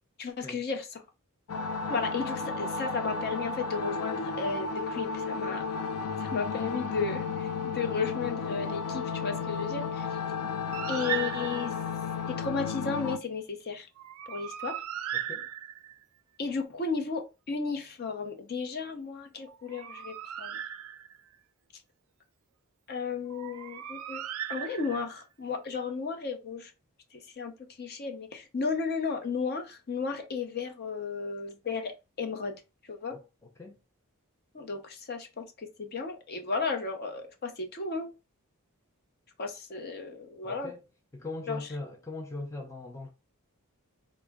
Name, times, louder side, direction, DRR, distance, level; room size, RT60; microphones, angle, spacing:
voice 1, 0.2-0.9 1.9-5.6 6.2-10.2 10.9-11.7 12.3-13.9 14.3-14.8 16.4-20.6 22.9-24.2 24.5-26.7 27.1-27.5 27.8-33.1 34.5-38.1 39.4-40.7 41.5-41.6, left 4 dB, 45° left, 0.7 m, -34 dB
sound 1, 1.5-13.2, left 5 dB, 80° left, 0.4 m, -33 dB
Bird, 10.7-11.9 14.0-16.0 19.5-21.3 23.3-25.2, right 11 dB, 70° right, 0.4 m, -37 dB
voice 2, 15.1-15.5 33.1-33.8 40.4-40.8 41.1-43.1, left 2 dB, 15° left, 0.4 m, -40 dB
3.6 x 2.0 x 3.4 m
head